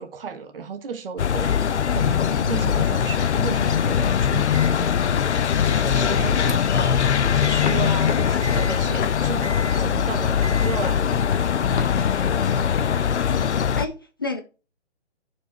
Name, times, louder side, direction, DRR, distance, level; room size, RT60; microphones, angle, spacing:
voice 1, 0.0-5.0 5.6-11.5, right 6 dB, 50° right, 1.4 m, -34 dB
sound 1, 1.2-13.9, left 8 dB, 75° left, 0.7 m, -21 dB
Microwave oven, 4.5-6.9 7.4-7.8 8.4-8.8 9.4-9.8 10.4-10.8, right 1 dB, 90° right, 1.4 m, -37 dB
voice 2, 5.9-6.6 13.5-14.4, left 3 dB, 20° left, 0.4 m, -32 dB
sound 2, 7.6-12.9, left 4 dB, 45° left, 1.3 m, -34 dB
10.0 x 4.7 x 4.4 m
hypercardioid pair, 150°, 35 cm